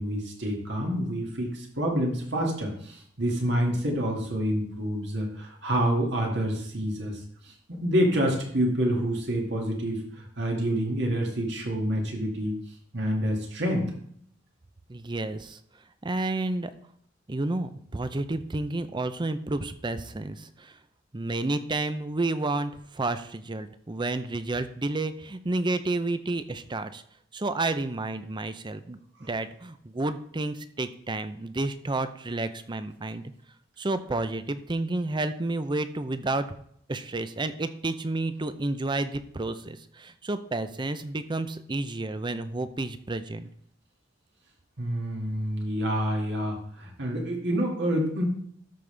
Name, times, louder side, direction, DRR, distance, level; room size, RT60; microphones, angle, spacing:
voice 1, 0.0-12.6 12.9-13.9 29.2-29.3 44.8-48.2, equal, 65° right, 0 dB, 2.2 m, -28 dB
voice 2, 14.9-15.6 16.0-16.7 17.3-20.7 21.1-27.0 27.3-33.2 33.8-36.4 36.9-43.5, right 2 dB, 25° right, 11 dB, 0.6 m, -30 dB
13.0 x 5.4 x 3.4 m, 0.65 s
head